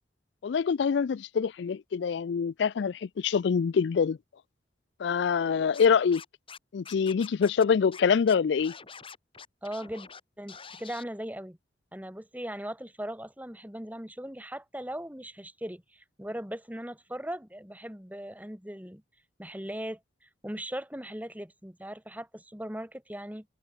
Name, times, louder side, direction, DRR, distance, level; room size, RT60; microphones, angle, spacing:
voice 1, 0.4-4.2 5.0-6.2 6.7-8.8, left 6 dB, 70° left, 0.4 m, -25 dB
Scratching (performance technique), 5.7-6.6 6.8-7.6 7.9-8.0 8.3-10.2 10.5-11.0, left 6 dB, 30° left, 7.1 m, -46 dB
voice 2, 9.6-10.1 10.4-11.6 11.9-19.0 19.4-20.0 20.4-23.4, equal, 10° right, 3.2 m, -39 dB
head